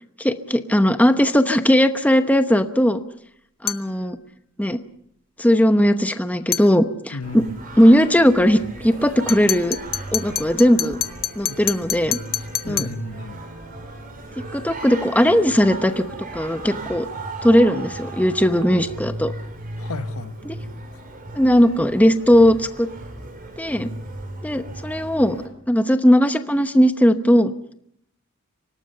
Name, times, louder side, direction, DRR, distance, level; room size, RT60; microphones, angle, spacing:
voice 1, 0.2-3.0 3.6-4.2 4.6-4.8 5.4-7.4 7.8-9.8 10.1-11.0 11.4-12.2 12.7-12.9 14.5-16.0 16.3-17.1 17.4-19.3 20.4-20.6 21.3-22.9 23.6-23.9 24.4-25.4 25.7-27.5, equal, 5° left, 9 dB, 0.9 m, -18 dB
sound 1, 3.7-3.9 6.5-6.7 9.3-13.0, left 11 dB, 45° left, 0.9 m, -27 dB
voice 2, 7.1-7.5 11.5-11.6 12.6-13.4 19.8-20.3, left 2 dB, 75° left, 10 dB, 1.4 m, -33 dB
Singing, 7.2-25.5, right 2 dB, 40° right, 4.7 m, -36 dB
25.0 x 18.5 x 6.7 m, 0.70 s
head